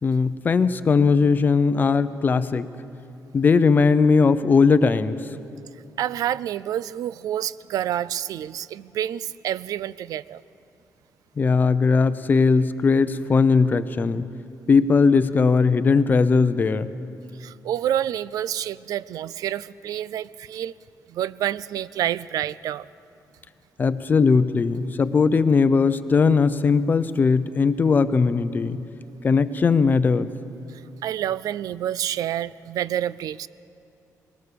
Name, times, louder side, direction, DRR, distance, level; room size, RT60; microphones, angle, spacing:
voice 1, 0.0-2.7 3.3-5.2 11.4-14.3 14.7-16.9 23.8-28.8 29.2-30.3, left 4 dB, 30° left, 12 dB, 0.6 m, -19 dB
voice 2, 6.0-10.4 17.4-20.7 21.1-22.9 30.7-33.5, right 11 dB, 85° right, 19 dB, 0.4 m, -28 dB
21.0 x 18.0 x 6.9 m, 2.7 s
cardioid pair, 155°, 6 cm